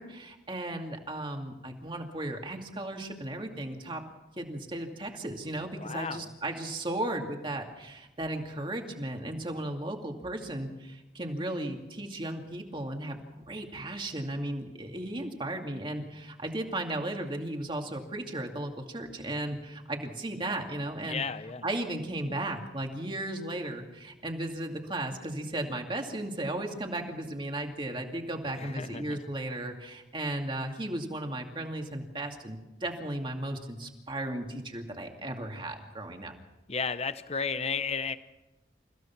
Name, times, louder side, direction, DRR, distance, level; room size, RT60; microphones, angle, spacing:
voice 1, 0.0-4.0 4.4-13.2 13.5-21.2 21.6-36.3, right 1 dB, 25° right, 3 dB, 2.5 m, -35 dB
voice 2, 5.8-6.3 21.0-21.7 28.6-29.2 36.7-38.2, left 5 dB, 35° left, 12 dB, 0.7 m, -33 dB
29.5 x 16.0 x 6.0 m, 1.0 s
head